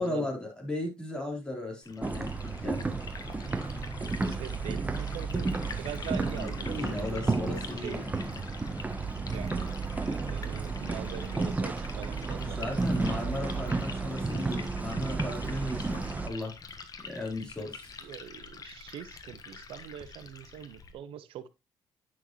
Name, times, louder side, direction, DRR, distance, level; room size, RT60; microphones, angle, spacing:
voice 1, 0.0-2.8 6.1-8.1 12.3-16.5 17.0-18.1, left 1 dB, 10° left, 4.0 m, -36 dB
Liquid, 1.8-20.9, left 5 dB, 40° left, 1.4 m, -46 dB
sound 1, 2.0-16.3, right 3 dB, 15° right, 1.0 m, -32 dB
voice 2, 4.0-5.5 5.8-7.1 7.8-8.0 9.3-9.7 10.1-13.0 18.0-21.5, right 10 dB, 80° right, 0.7 m, -43 dB
9.6 x 6.3 x 3.1 m
cardioid pair, 105°, 9 cm